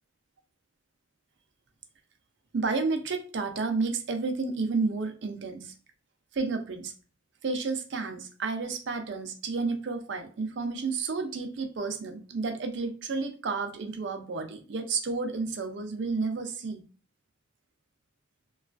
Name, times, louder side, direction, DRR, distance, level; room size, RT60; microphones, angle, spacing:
voice 1, 2.5-5.7 6.3-6.9 7.4-16.8, right 4 dB, 60° right, 0.4 m, -31 dB
3.0 x 2.3 x 2.4 m
head